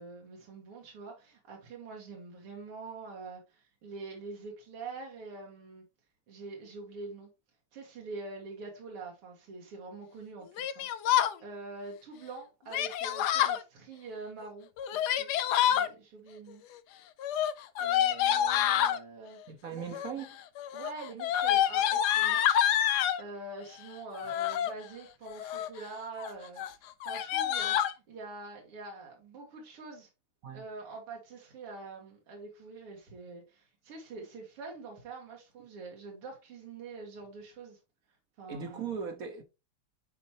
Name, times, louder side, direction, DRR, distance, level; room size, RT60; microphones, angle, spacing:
voice 1, 0.0-5.8 6.3-7.3 7.7-10.9 11.4-14.7 15.0-15.3 15.7-16.6 17.8-19.4 19.7-19.9 20.7-22.4 23.2-26.6 27.0-30.1 30.5-37.8 38.4-38.8, right 3 dB, 90° right, 2.6 m, -45 dB
Yell, 10.6-11.3 12.7-13.6 14.8-15.9 17.2-19.0 19.8-20.2 20.6-23.2 24.1-24.7 25.3-25.8 26.2-26.3 26.6-26.7 27.0-27.9, left 10 dB, 80° left, 0.9 m, -27 dB
voice 2, 19.5-20.4 30.4-30.6 38.5-39.4, right 6 dB, 55° right, 1.0 m, -38 dB
9.6 x 4.4 x 2.8 m
omnidirectional pair, 2.4 m